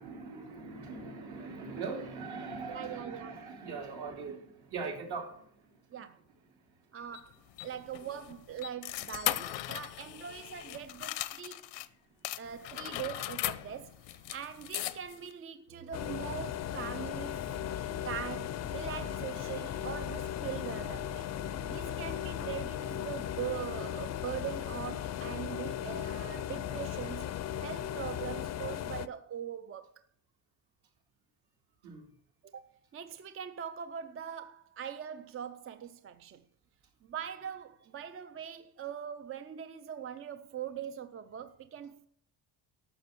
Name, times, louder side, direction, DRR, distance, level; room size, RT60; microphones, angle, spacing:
voice 1, 0.0-6.0 6.5-6.8 12.1-12.3 17.7-17.9 31.8-32.1, right 4 dB, 60° right, 3.1 m, -41 dB
voice 2, 2.7-3.3 5.9-6.2 6.9-11.7 12.4-17.7 18.1-21.3 21.7-27.3 27.6-30.0 32.4-32.7 32.9-36.4 37.0-42.1, right 9 dB, 30° right, 0.5 m, -42 dB
sound 1, 7.1-11.9 12.2-15.3, left 16 dB, 85° left, 0.8 m, -38 dB
sound 2, 15.7-22.7, right 6 dB, 85° right, 1.6 m, -52 dB
sound 3, 15.9-29.1, left 11 dB, 40° left, 0.5 m, -37 dB
12.0 x 6.8 x 5.9 m
cardioid pair, 145°, 43 cm